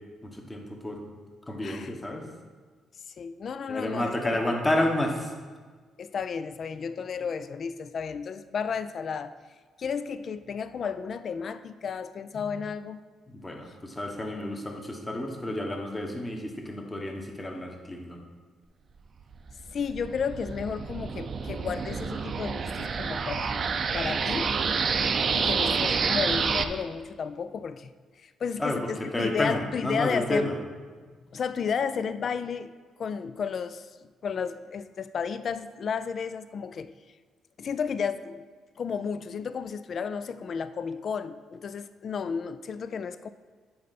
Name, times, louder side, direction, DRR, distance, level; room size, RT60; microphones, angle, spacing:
voice 1, 0.2-1.0 1.5-2.2 3.7-5.3 13.4-18.2 28.6-28.8 29.1-30.5, left 1 dB, 20° left, 2 dB, 1.2 m, -30 dB
voice 2, 1.6-1.9 3.2-4.5 6.0-9.3 9.8-13.0 19.7-23.6 23.9-24.6 25.3-27.9 28.2-30.5 31.3-33.9 34.2-36.9 37.6-38.5 38.8-43.3, left 6 dB, 55° left, 13 dB, 0.3 m, -33 dB
sound 1, 19.3-26.6, right 5 dB, 50° right, 0.5 m, -28 dB
8.4 x 5.5 x 4.1 m, 1.5 s
cardioid pair, 90°, 0 cm